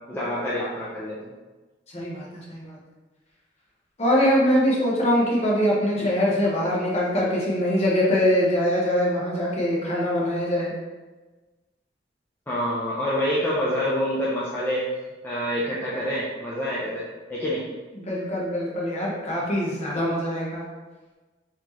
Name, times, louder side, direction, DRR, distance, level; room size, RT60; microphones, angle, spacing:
voice 1, 0.1-1.2 12.5-14.9 15.2-17.6, equal, 10° left, -8 dB, 0.5 m, -27 dB
voice 2, 1.9-2.8 4.0-10.7 18.0-20.6, equal, 35° left, -5 dB, 1.0 m, -23 dB
4.1 x 2.8 x 3.0 m, 1.3 s
head